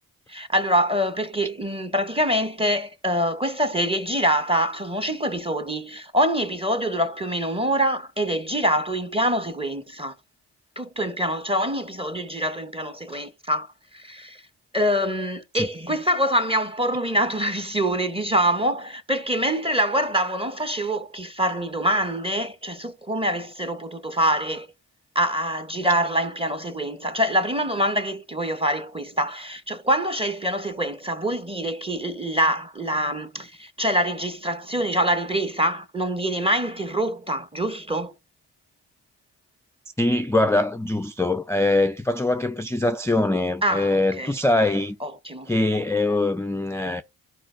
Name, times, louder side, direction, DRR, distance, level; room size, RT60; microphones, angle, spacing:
voice 1, 0.3-10.1 10.8-13.7 13.9-14.4 14.7-24.7 25.1-38.1 43.6-44.3 45.0-45.5, equal, 15° right, 0.8 m, -25 dB
voice 2, 40.0-45.0 45.5-47.0, left 2 dB, 10° left, 0.3 m, -23 dB
12.0 x 4.2 x 2.5 m
cardioid pair, 45°, 39 cm